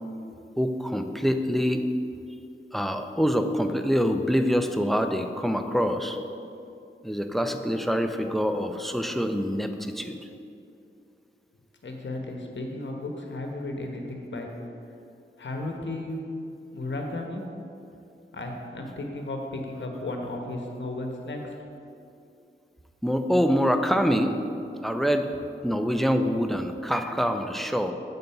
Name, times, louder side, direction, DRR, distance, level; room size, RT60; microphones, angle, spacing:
voice 1, 0.6-1.8 2.7-6.2 7.0-10.2 23.0-24.4 24.8-25.3 25.6-27.9, equal, ahead, 7 dB, 0.5 m, -25 dB
voice 2, 11.8-14.5 15.4-16.2 16.7-17.4 18.3-21.5, left 2 dB, 65° left, 2 dB, 1.0 m, -34 dB
6.9 x 4.0 x 5.7 m, 2.6 s
cardioid pair, 55°, 20 cm